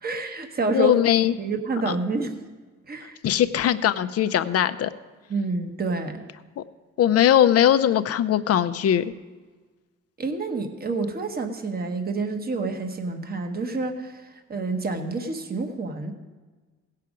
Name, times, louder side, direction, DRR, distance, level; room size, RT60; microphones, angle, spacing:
voice 1, 0.0-1.0 1.3-2.3 2.9-3.2 5.3-6.2 10.2-16.1, right 3 dB, 30° right, 6 dB, 1.2 m, -28 dB
voice 2, 0.7-1.3 3.2-4.9 7.0-9.0, left 10 dB, 55° left, 12 dB, 0.6 m, -20 dB
17.0 x 5.7 x 5.0 m, 1.3 s
cardioid pair, 90°, 30 cm